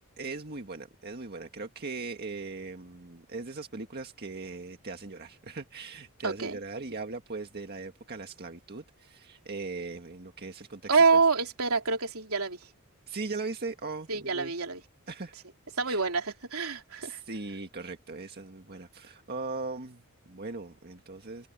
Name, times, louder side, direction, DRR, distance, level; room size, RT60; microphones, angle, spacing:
voice 1, 0.2-11.0 13.1-14.5 15.1-15.3 15.9-16.0 17.0-21.5, right 3 dB, 45° right, 1.8 m, -39 dB
voice 2, 6.2-6.6 10.9-12.6 14.1-14.8 15.8-17.2, right 4 dB, 75° right, 3.3 m, -26 dB
head